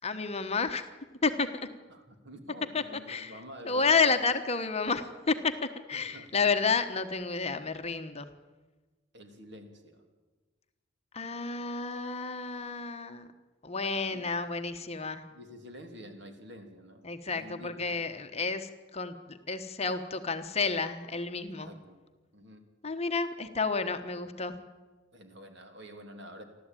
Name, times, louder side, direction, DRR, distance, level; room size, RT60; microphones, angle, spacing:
voice 1, 0.0-0.9 1.2-1.7 2.7-2.8 3.1-3.3 3.6-8.3 11.1-13.3 13.6-15.2 17.0-21.7 22.8-24.5, left 4 dB, 30° left, 8 dB, 1.2 m, -30 dB
voice 2, 1.9-4.1 5.9-6.3 9.1-10.0 14.1-14.2 15.3-17.1 17.3-18.1 21.6-22.0 22.3-22.6 25.1-26.4, equal, 60° right, 6 dB, 3.1 m, -48 dB
29.0 x 12.5 x 9.1 m, 1.3 s
head